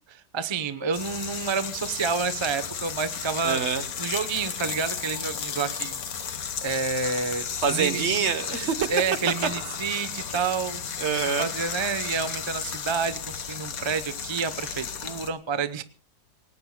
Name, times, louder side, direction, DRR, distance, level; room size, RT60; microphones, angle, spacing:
voice 1, 0.1-3.6 4.0-6.3 6.6-8.0 8.9-10.8 11.4-15.8, right 5 dB, 25° right, 12 dB, 0.6 m, -29 dB
sound 1, 0.9-15.3, left 7 dB, 65° left, 1.6 m, -34 dB
voice 2, 3.4-3.8 7.6-8.9 11.0-11.5, right 6 dB, 50° right, 12 dB, 1.2 m, -25 dB
26.5 x 18.5 x 2.2 m, 0.37 s
omnidirectional pair, 1.7 m